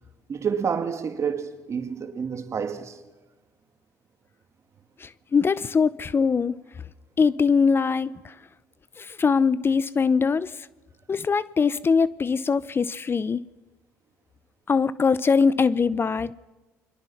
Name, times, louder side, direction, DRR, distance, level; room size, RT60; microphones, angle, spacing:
voice 1, 0.3-3.0, right 6 dB, 45° right, 2.7 m, -29 dB
voice 2, 5.0-6.6 7.2-8.3 9.0-10.5 11.1-13.4 14.7-16.3, left 5 dB, 35° left, 0.8 m, -22 dB
29.0 x 22.5 x 5.9 m
supercardioid pair, 70°, 7 cm